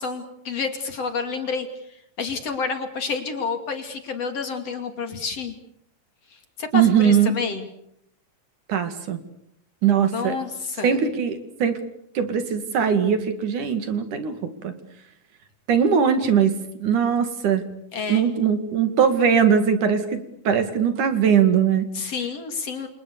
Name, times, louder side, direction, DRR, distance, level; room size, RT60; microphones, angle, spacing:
voice 1, 0.0-5.6 6.3-7.7 10.1-11.0 17.9-18.3 21.9-22.9, left 5 dB, 45° left, 7 dB, 3.5 m, -29 dB
voice 2, 6.7-7.3 8.7-9.2 9.8-10.4 10.8-11.8 12.2-14.4 14.6-14.7 15.7-17.6 18.1-21.9, right 7 dB, 65° right, 9 dB, 3.6 m, -20 dB
29.0 x 27.5 x 6.9 m, 0.74 s
omnidirectional pair, 4.0 m